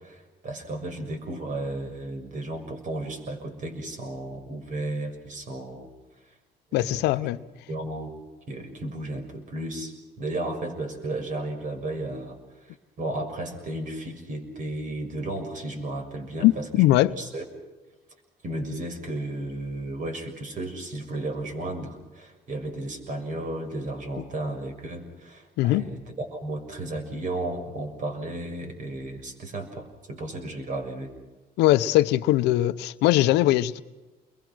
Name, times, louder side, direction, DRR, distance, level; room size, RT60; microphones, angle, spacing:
voice 1, 0.0-5.9 6.7-7.0 7.7-8.1 8.5-12.4 12.7-17.4 18.4-31.1, right 2 dB, 50° right, 6.5 m, -34 dB
voice 2, 6.7-7.4 16.4-17.1 25.6-25.9 31.6-33.8, left 15 dB, 90° left, 0.8 m, -21 dB
29.5 x 22.5 x 6.3 m
cardioid pair, 110°, 17 cm